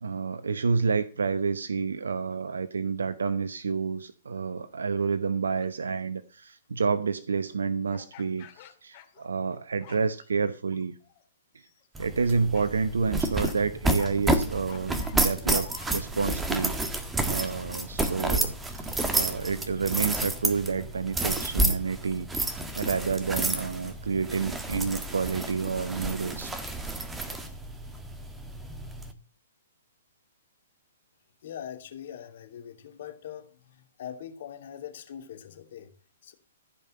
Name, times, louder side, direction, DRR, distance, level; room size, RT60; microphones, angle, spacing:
voice 1, 0.0-11.0 12.0-16.7 17.2-22.3 22.8-26.5, right 5 dB, 80° right, 14 dB, 0.9 m, -29 dB
sound 1, 5.6-5.8 7.9-9.6 9.8-10.3 10.7-11.2 11.6-11.9 12.5-12.8 13.3-13.6 14.0-16.2, left 12 dB, 40° left, 2.5 m, -48 dB
sound 2, 12.0-29.1, right 2 dB, 10° right, 1.6 m, -30 dB
voice 2, 31.4-35.9 36.2-36.3, left 9 dB, 55° left, 5 dB, 2.8 m, -42 dB
15.0 x 5.4 x 7.7 m, 0.39 s
hypercardioid pair, 130°, 0 cm